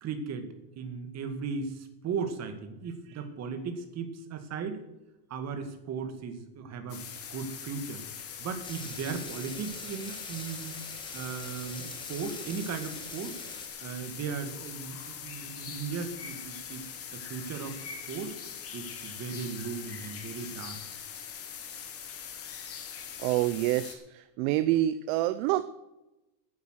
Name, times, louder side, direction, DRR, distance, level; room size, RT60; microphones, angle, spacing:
voice 1, 0.0-4.8 5.3-8.0 8.4-10.7 11.1-13.4 13.8-16.8 17.1-18.4 18.7-20.8, right 5 dB, 30° right, 6 dB, 2.1 m, -37 dB
sound 1, 6.9-23.9, left 7 dB, 30° left, 1.7 m, -42 dB
sound 2, 8.6-13.7, left 2 dB, 10° left, 1.9 m, -44 dB
voice 2, 23.2-24.0 24.4-25.7, right 14 dB, 55° right, 14 dB, 0.7 m, -26 dB
11.5 x 10.0 x 6.4 m, 0.98 s
supercardioid pair, 145°, 50 cm